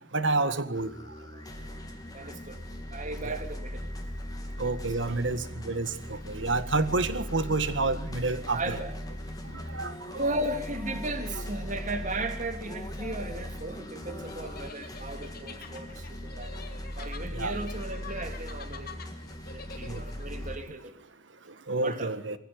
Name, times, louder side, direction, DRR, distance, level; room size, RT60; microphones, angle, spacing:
voice 1, 0.1-0.9 3.3-3.4 4.6-8.8 9.7-9.9 17.3-17.5 19.9-20.0 21.7-22.4, right 3 dB, 70° right, 12 dB, 1.8 m, -29 dB
sound 1, 0.7-20.6, equal, 20° left, 3.0 m, -39 dB
voice 2, 2.1-2.6 2.9-3.9 5.1-5.3 8.5-9.0 10.2-16.6 17.0-19.0 19.5-20.9 21.8-22.1, right 2 dB, 40° right, 7 dB, 3.0 m, -36 dB
sound 2, 14.2-20.2, left 5 dB, 55° left, 2.6 m, -47 dB
23.0 x 16.0 x 9.6 m, 0.72 s
head